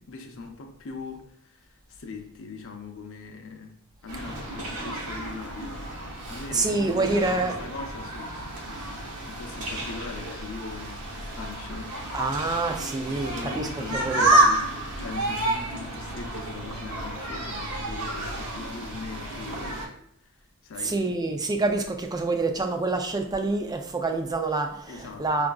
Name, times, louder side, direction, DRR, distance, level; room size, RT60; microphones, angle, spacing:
voice 1, 0.0-5.9 6.3-9.0 9.2-12.0 13.0-20.3 20.6-21.3 24.9-25.3, left 4 dB, 60° left, 2 dB, 0.6 m, -41 dB
voice 2, 4.1-4.4 6.5-7.5 12.1-14.4 20.8-25.5, right 3 dB, 15° right, 4 dB, 0.4 m, -27 dB
sound 1, 4.1-19.9, right 2 dB, 90° right, 0.8 m, -30 dB
5.8 x 2.4 x 2.3 m, 0.70 s
head